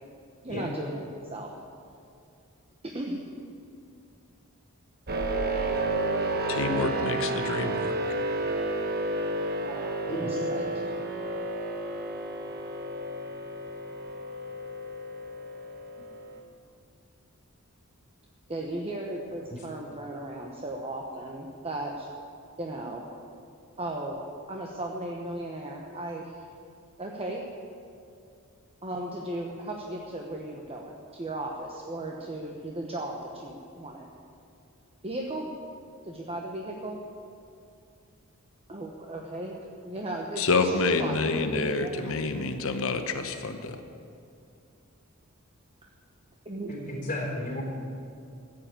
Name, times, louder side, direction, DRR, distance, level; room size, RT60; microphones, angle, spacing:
voice 1, 0.4-1.5 2.8-3.2 9.6-11.0 18.5-22.1 22.6-23.0 23.8-26.5 27.0-27.4 28.8-34.1 35.0-35.5 36.0-37.0 38.7-42.1 46.4-46.7, right 1 dB, 25° right, 0 dB, 1.1 m, -36 dB
sound 1, 5.1-16.4, right 2 dB, 45° right, 1.1 m, -31 dB
voice 2, 6.5-7.9 40.4-43.8, left 3 dB, 65° left, 7 dB, 1.0 m, -28 dB
voice 3, 46.7-47.6, left 1 dB, 35° left, -1 dB, 3.4 m, -34 dB
14.5 x 7.7 x 8.9 m, 2.4 s
head